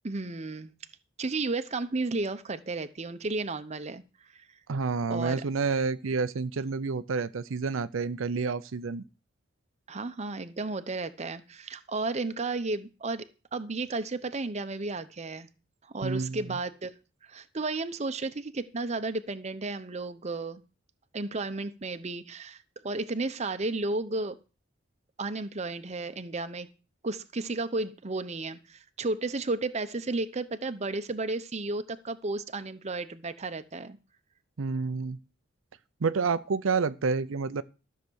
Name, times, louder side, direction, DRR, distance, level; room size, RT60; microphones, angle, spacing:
voice 1, 0.0-0.7 1.2-4.0 4.3-4.5 5.1-5.4 9.9-13.3 13.5-15.5 15.8-17.0 17.2-20.6 21.1-24.4 25.2-26.7 27.0-34.0, right 3 dB, 35° right, 0.8 m, -33 dB
voice 2, 4.7-9.0 16.0-16.6 34.6-35.2 36.0-37.6, right 4 dB, 80° right, 0.6 m, -29 dB
13.0 x 6.7 x 6.3 m
head